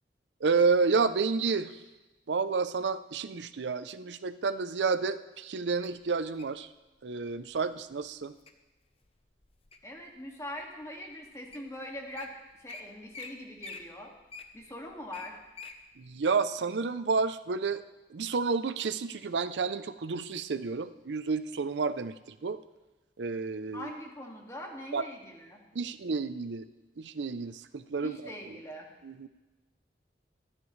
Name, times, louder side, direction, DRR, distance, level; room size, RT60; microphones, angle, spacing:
voice 1, 0.4-1.8 2.3-6.7 7.0-8.3 16.0-17.8 18.1-22.6 23.2-23.9 24.9-25.0 25.7-26.7 27.0-28.6 29.0-29.3, right 4 dB, 90° right, 13 dB, 0.5 m, -30 dB
Wild animals, 5.8-6.6 7.3-7.6 8.1-8.5 9.0-10.0 10.6-10.7 11.3-11.4 11.5-11.7 12.0-12.3 12.7-12.8 13.1-13.3 13.6-15.8 16.2-16.3, left 4 dB, 35° left, 0.9 m, -45 dB
voice 2, 9.8-14.1 14.5-15.4 23.7-25.6 28.0-28.9, left 1 dB, 20° left, 0 dB, 2.1 m, -42 dB
25.0 x 9.8 x 3.2 m, 1.1 s
head